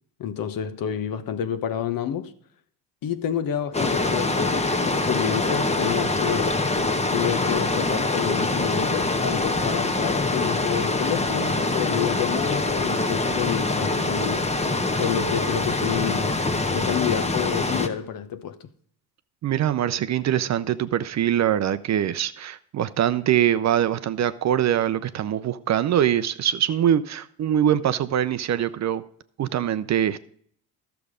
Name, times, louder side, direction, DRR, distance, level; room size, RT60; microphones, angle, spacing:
voice 1, 0.2-2.3 3.0-6.6 7.1-14.5 15.0-16.4 16.7-18.7, left 9 dB, 50° left, 1.0 m, -29 dB
sound 1, 3.7-17.9, left 2 dB, 15° left, 1.1 m, -24 dB
voice 2, 19.4-29.0 29.4-30.2, right 10 dB, 40° right, 0.6 m, -23 dB
12.0 x 6.9 x 4.9 m
supercardioid pair, 80°, 43 cm